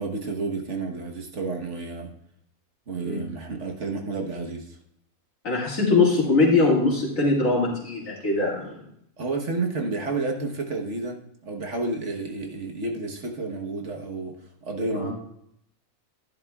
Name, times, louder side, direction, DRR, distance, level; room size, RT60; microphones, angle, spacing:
voice 1, 0.0-2.1 2.9-4.8 9.2-15.1, right 3 dB, 55° right, 2 dB, 1.5 m, -31 dB
voice 2, 5.4-8.7 14.9-15.1, left 3 dB, 70° left, -3 dB, 2.7 m, -22 dB
11.0 x 10.5 x 2.3 m, 0.70 s
omnidirectional pair, 1.5 m